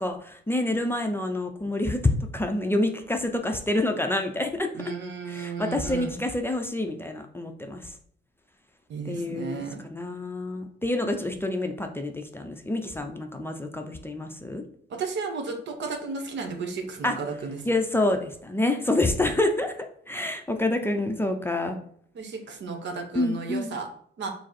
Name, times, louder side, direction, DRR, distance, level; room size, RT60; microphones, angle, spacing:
voice 1, 0.0-4.8 5.2-8.0 9.0-14.6 17.0-17.2 17.6-21.8 23.1-23.8, left 2 dB, 10° left, 4 dB, 0.5 m, -27 dB
voice 2, 4.7-6.2 8.9-9.8 14.9-17.6 22.1-23.9 24.2-24.3, right 4 dB, 65° right, 4 dB, 0.9 m, -33 dB
5.0 x 2.0 x 4.2 m, 0.62 s
cardioid pair, 90°, 20 cm